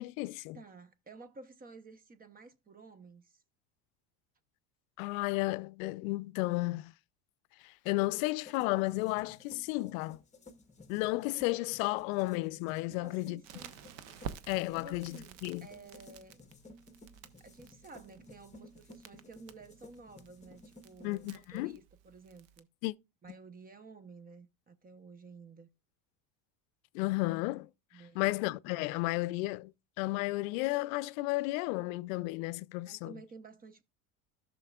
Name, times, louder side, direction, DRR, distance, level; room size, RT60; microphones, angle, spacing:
voice 1, 0.0-0.6 5.0-6.9 7.6-10.2 10.9-13.4 14.5-15.7 21.0-21.8 22.8-22.9 26.9-27.7 28.2-29.7 30.0-33.1, left 21 dB, 80° left, 0.5 m, -33 dB
voice 2, 0.5-3.4 12.9-13.8 14.7-16.4 17.4-22.7 23.2-25.7 27.9-28.4 32.8-33.8, right 4 dB, 20° right, 0.8 m, -53 dB
sound 1, 8.4-21.3, left 2 dB, 20° left, 1.2 m, -56 dB
Crackle, 13.4-22.6, right 8 dB, 80° right, 0.9 m, -51 dB
13.5 x 6.3 x 2.3 m
supercardioid pair, 120°, 39 cm